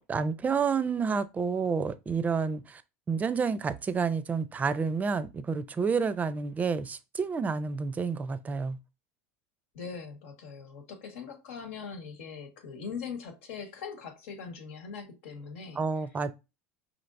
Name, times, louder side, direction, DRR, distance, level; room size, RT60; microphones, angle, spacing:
voice 1, 0.1-2.8 3.1-8.8 15.8-16.3, right 5 dB, 25° right, 0.5 m, -29 dB
voice 2, 9.7-15.9, left 6 dB, 85° left, 1.2 m, -41 dB
5.1 x 3.3 x 2.6 m
supercardioid pair, 110°, 7 cm